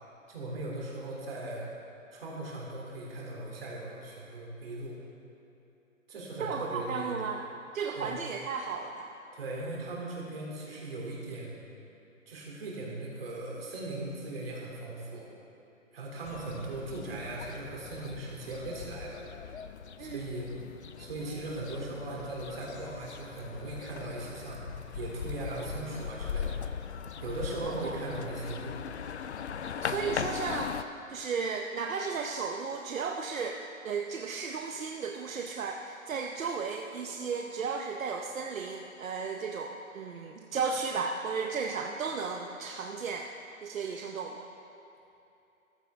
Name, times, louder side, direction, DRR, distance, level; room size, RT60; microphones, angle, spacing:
voice 1, 0.3-1.7 2.1-5.0 6.1-7.3 7.9-8.1 9.3-11.6 12.3-15.3 15.9-19.2 20.0-20.5 21.0-26.6 27.2-28.8, right 2 dB, 45° right, -3 dB, 3.0 m, -38 dB
voice 2, 6.4-7.5 7.7-9.1 20.0-20.2 27.6-28.0 29.8-30.7 31.1-43.3 43.6-44.5, right 5 dB, 75° right, 2 dB, 0.9 m, -34 dB
sound 1, 16.2-30.8, left 7 dB, 55° left, 0.5 m, -39 dB
14.5 x 12.0 x 3.5 m, 2.9 s
hypercardioid pair, 170°, 41 cm